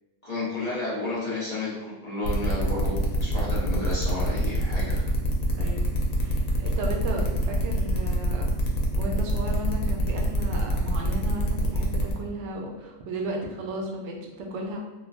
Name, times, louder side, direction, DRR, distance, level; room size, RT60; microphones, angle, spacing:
voice 1, 0.2-5.0, left 2 dB, 55° left, -8 dB, 0.4 m, -31 dB
sound 1, 2.2-12.1, left 1 dB, 80° left, 1.0 m, -26 dB
voice 2, 5.5-5.8 6.2-8.5 9.0-14.8, right 1 dB, 65° right, 1 dB, 0.7 m, -34 dB
3.2 x 2.1 x 2.4 m, 1.1 s
omnidirectional pair, 1.5 m